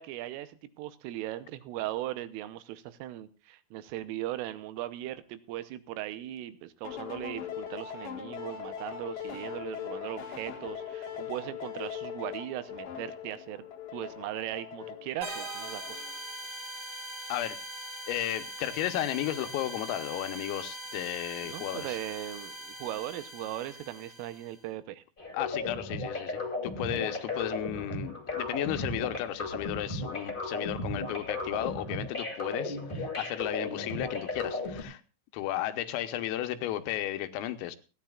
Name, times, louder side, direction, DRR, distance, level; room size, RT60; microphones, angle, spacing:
voice 1, 0.0-13.6 13.9-16.0 21.4-25.0, right 14 dB, 80° right, 13 dB, 3.4 m, -38 dB
sound 1, 6.8-16.2, left 8 dB, 60° left, 2.2 m, -40 dB
sound 2, 15.2-24.6, right 1 dB, 40° right, 1.1 m, -41 dB
voice 2, 18.1-22.0 25.3-35.0 35.3-37.8, left 13 dB, 80° left, 9 dB, 3.6 m, -34 dB
sound 3, 25.2-34.8, left 2 dB, 25° left, 1.0 m, -35 dB
29.5 x 10.0 x 2.4 m, 0.32 s
omnidirectional pair, 6.0 m